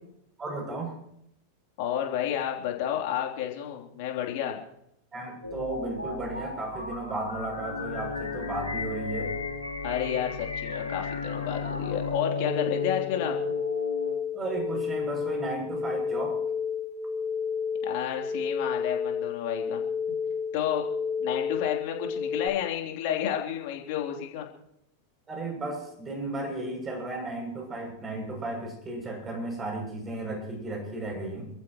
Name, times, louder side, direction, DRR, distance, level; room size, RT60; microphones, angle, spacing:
voice 1, 0.4-1.0 5.1-9.3 14.3-16.4 25.3-31.5, right 2 dB, 20° right, 1 dB, 7.5 m, -34 dB
voice 2, 1.8-4.6 9.8-13.4 17.8-19.8 20.3-20.9 21.2-24.5, left 10 dB, 45° left, 1 dB, 3.5 m, -31 dB
sound 1, 5.4-12.1, left 3 dB, 85° left, 4.4 m, -38 dB
sound 2, 7.6-14.2, left 4 dB, 85° right, 2.2 m, -35 dB
sound 3, 12.5-22.5, left 6 dB, 10° left, 3.6 m, -31 dB
29.0 x 14.5 x 3.1 m, 0.76 s
figure-of-eight pair, 90°, 0 cm